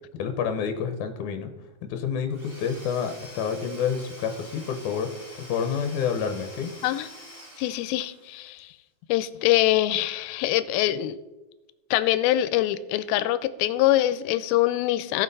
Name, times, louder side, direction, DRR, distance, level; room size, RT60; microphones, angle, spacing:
voice 1, 0.2-1.5 1.8-5.1 5.4-6.7, left 7 dB, 70° left, 1.9 m, -28 dB
Domestic sounds home sounds / Tools, 2.3-8.4, equal, 45° right, 0.7 m, -46 dB
voice 2, 7.6-8.7 9.1-11.2 11.9-15.2, left 14 dB, 90° left, 2.4 m, -24 dB
16.5 x 5.9 x 4.0 m
omnidirectional pair, 4.2 m